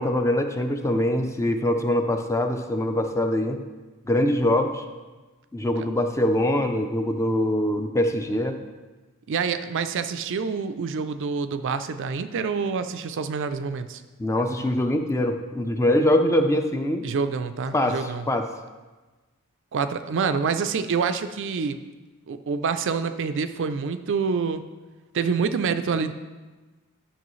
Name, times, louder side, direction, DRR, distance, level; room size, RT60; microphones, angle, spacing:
voice 1, 0.0-3.6 4.1-4.8 5.5-8.6 14.2-17.1 17.7-18.0 18.3-18.5, left 1 dB, 15° left, 6 dB, 0.5 m, -23 dB
voice 2, 9.3-14.0 17.0-18.3 19.7-21.8 22.3-24.6 25.1-26.1, right 5 dB, 55° right, 10 dB, 0.4 m, -27 dB
10.5 x 6.1 x 3.1 m, 1.3 s
head